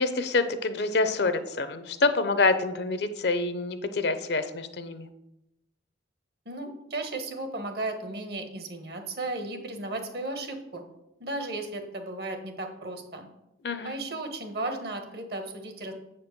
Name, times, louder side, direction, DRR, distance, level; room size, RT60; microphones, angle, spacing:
voice 1, 0.0-5.1 13.6-13.9, left 3 dB, 60° left, 10 dB, 0.6 m, -26 dB
voice 2, 6.4-10.8 11.2-13.3 13.8-15.9, right 2 dB, 55° right, 5 dB, 1.2 m, -35 dB
7.7 x 4.4 x 6.6 m, 0.88 s
head